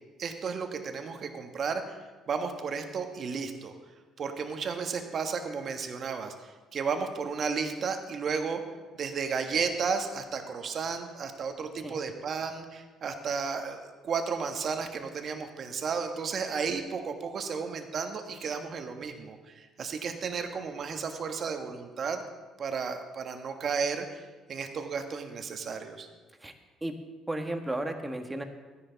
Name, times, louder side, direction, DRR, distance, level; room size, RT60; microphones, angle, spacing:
voice 1, 0.2-2.0 2.3-3.7 4.2-8.6 8.9-22.2 22.6-24.2 24.5-26.1, right 5 dB, 50° right, 6 dB, 1.4 m, -33 dB
voice 2, 27.3-28.4, right 1 dB, 15° right, 5 dB, 1.5 m, -33 dB
13.5 x 10.5 x 4.0 m, 1.3 s
supercardioid pair, 65°, 0 cm